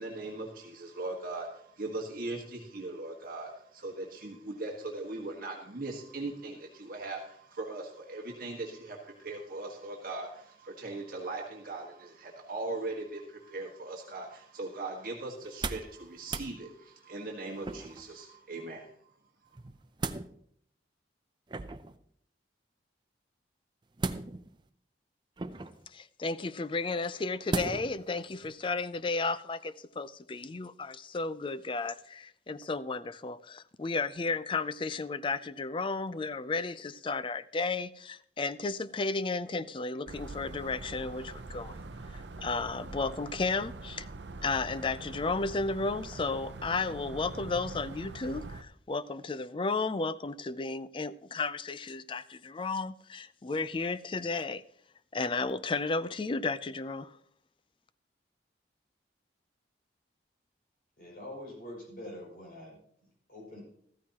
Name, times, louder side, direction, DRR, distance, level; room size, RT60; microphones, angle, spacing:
voice 1, 0.0-18.9, right 2 dB, 50° right, 1.6 m, -39 dB
sound 1, 15.4-16.0 16.2-16.5 17.6-18.1 19.6-20.3 21.5-22.0 24.0-24.6 25.4-25.9 27.5-28.0 28.4-28.5, right 3 dB, 25° right, 0.5 m, -36 dB
voice 2, 25.9-41.8 42.1-44.1 44.4-54.6 55.1-57.1, left 3 dB, 30° left, 0.4 m, -33 dB
sound 2, 40.1-48.6, right 2 dB, 75° right, 0.7 m, -44 dB
voice 3, 61.0-63.6, left 1 dB, 50° left, 6.0 m, -45 dB
14.0 x 14.0 x 2.9 m
head